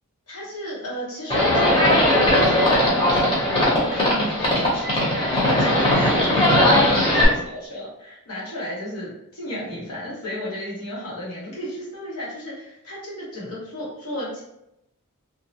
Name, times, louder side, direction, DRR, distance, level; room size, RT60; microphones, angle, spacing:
voice 1, 0.3-14.4, equal, 90° left, -6 dB, 1.2 m, -33 dB
Livestock farm animals working animals, 1.3-7.2, left 1 dB, 25° left, 0.7 m, -19 dB
2.9 x 2.0 x 2.7 m, 0.83 s
head